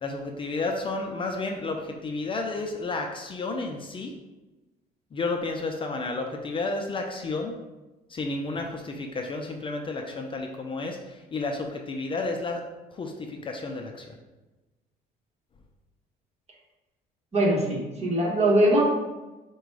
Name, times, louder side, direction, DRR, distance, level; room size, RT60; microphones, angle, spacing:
voice 1, 0.0-4.1 5.1-7.6 8.1-12.6 12.9-14.1, left 3 dB, 30° left, 3 dB, 0.5 m, -31 dB
voice 2, 17.3-18.8, right 1 dB, 40° right, -3 dB, 1.3 m, -22 dB
4.8 x 2.3 x 4.7 m, 1.1 s
cardioid pair, 110°, 17 cm